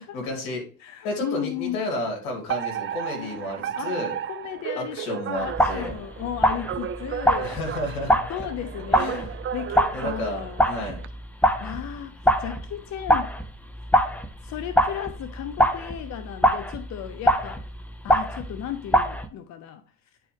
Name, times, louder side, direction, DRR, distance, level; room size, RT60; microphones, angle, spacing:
voice 1, 0.0-0.6 1.0-4.2 4.8-5.9 7.4-8.5 8.9-9.3 9.9-11.0, left 1 dB, 70° left, 2.8 m, -32 dB
voice 2, 0.8-1.8 2.9-3.4 3.8-4.0 4.3-7.6 8.3-9.2 9.5-10.6 11.4-13.3 14.4-17.6 18.0-19.8, left 10 dB, 45° left, 0.6 m, -35 dB
Alarm, 2.5-11.1, right 10 dB, 30° right, 0.5 m, -34 dB
sound 1, 5.5-12.0 12.3-18.7 18.9-19.3, equal, 5° left, 0.7 m, -24 dB
10.0 x 4.4 x 3.3 m
hypercardioid pair, 60°, 40 cm